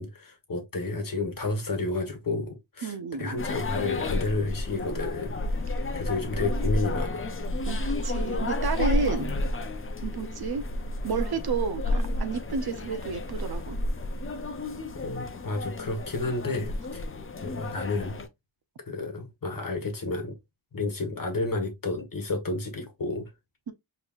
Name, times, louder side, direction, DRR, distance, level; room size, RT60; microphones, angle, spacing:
voice 1, 0.0-7.3 9.2-9.4 14.9-17.0 17.4-18.2 18.9-20.4 20.7-23.3, left 3 dB, 45° left, 1.5 m, -31 dB
voice 2, 2.8-3.3 7.7-9.3 10.0-10.6 11.0-13.8 23.7-23.8, right 5 dB, 55° right, 0.7 m, -31 dB
sound 1, 3.4-18.3, left 2 dB, 30° left, 0.6 m, -31 dB
4.5 x 3.2 x 2.4 m
cardioid pair, 80°, 46 cm